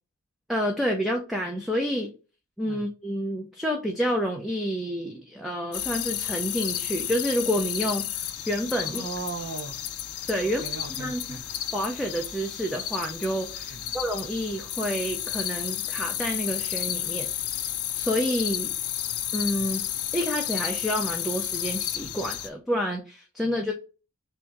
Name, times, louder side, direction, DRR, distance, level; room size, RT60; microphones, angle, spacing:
voice 1, 0.5-2.1 2.6-9.0 10.3-10.6 11.0-11.4 11.7-17.5 17.9-18.7 19.3-19.8 20.1-23.7, equal, ahead, 0.5 m, -29 dB
sound 1, 5.7-22.5, left 11 dB, 80° left, 0.6 m, -32 dB
voice 2, 8.8-9.8 10.4-11.4 13.7-13.9 19.6-19.7 23.4-23.5, right 4 dB, 55° right, 0.7 m, -38 dB
3.6 x 2.7 x 4.5 m
head